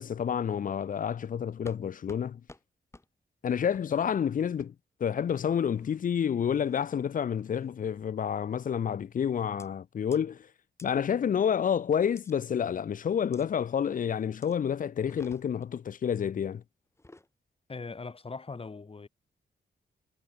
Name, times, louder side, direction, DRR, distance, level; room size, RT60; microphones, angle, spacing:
voice 1, 0.0-2.4 3.4-4.7 5.0-10.5 10.8-16.6, left 8 dB, 45° left, 0.4 m, -29 dB
sound 1, 1.7-1.8 2.1-2.2 2.5-2.6 2.9-3.1 3.7-3.9 4.6-4.7 5.7-6.0 6.6-6.9 7.4-7.7 8.5-8.8 9.6-9.7 10.1-10.2 10.8-10.9 12.2-12.3 13.3-13.5 14.4-14.6 15.0-15.7 16.9-17.3, left 2 dB, 15° left, 1.8 m, -53 dB
voice 2, 17.7-19.1, left 4 dB, 30° left, 1.4 m, -40 dB
cardioid pair, 90°, 19 cm